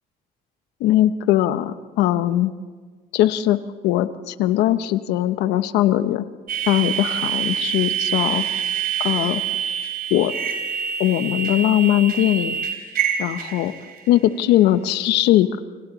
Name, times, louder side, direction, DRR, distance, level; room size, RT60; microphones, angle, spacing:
voice 1, 0.8-2.5 3.1-3.6 3.8-6.2 6.7-8.4 9.0-9.4 10.1-10.3 11.0-12.6 13.2-13.7 14.1-15.6, left 13 dB, 90° left, 12 dB, 1.0 m, -20 dB
sound 1, 6.5-14.1, right 8 dB, 60° right, 3.3 m, -26 dB
29.5 x 25.5 x 4.1 m, 1.5 s
cardioid pair, 110°, 17 cm